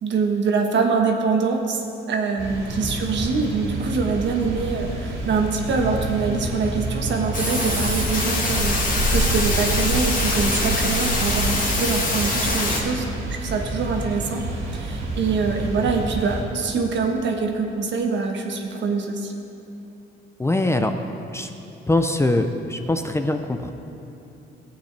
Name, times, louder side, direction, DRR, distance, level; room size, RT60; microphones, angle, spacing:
voice 1, 0.0-14.4 14.7-19.3, right 4 dB, 65° right, 2 dB, 1.3 m, -24 dB
sound 1, 2.4-16.4, right 2 dB, 80° right, 2.6 m, -28 dB
sound 2, 7.3-12.8, left 2 dB, 45° left, 2.1 m, -24 dB
voice 2, 20.4-20.9 21.3-21.5 21.9-23.7, left 2 dB, 15° left, 6 dB, 0.5 m, -22 dB
14.5 x 8.6 x 3.4 m, 2.8 s
cardioid pair, 90°, 20 cm